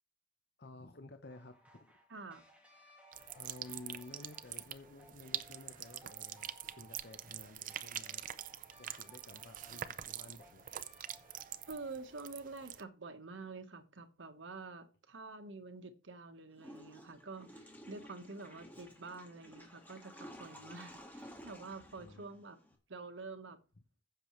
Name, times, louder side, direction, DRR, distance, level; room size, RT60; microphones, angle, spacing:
voice 1, 0.6-1.9 3.3-6.5 6.8-8.3 8.8-10.7 20.6-21.0 22.0-22.2, left 2 dB, 60° left, 0.9 m, -53 dB
sound 1, 1.3-12.1, right 1 dB, 5° right, 2.2 m, -62 dB
voice 2, 2.1-2.4 11.7-22.6 22.9-23.6, right 3 dB, 85° right, 1.3 m, -48 dB
sound 2, 3.1-12.8, right 10 dB, 45° right, 0.5 m, -45 dB
Water / Toilet flush, 16.6-22.8, equal, 10° left, 1.8 m, -54 dB
15.0 x 6.9 x 3.2 m
head